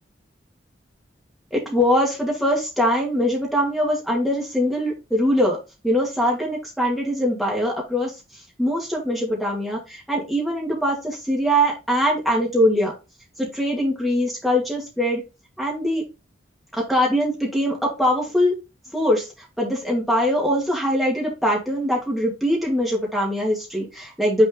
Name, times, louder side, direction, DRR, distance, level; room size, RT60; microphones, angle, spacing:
voice 1, 1.5-5.6 5.8-8.1 8.6-12.9 13.4-15.2 15.6-16.0 16.9-18.5 18.9-19.3 19.6-24.5, equal, ahead, -2 dB, 2.2 m, -22 dB
6.3 x 4.2 x 3.8 m, 0.27 s
head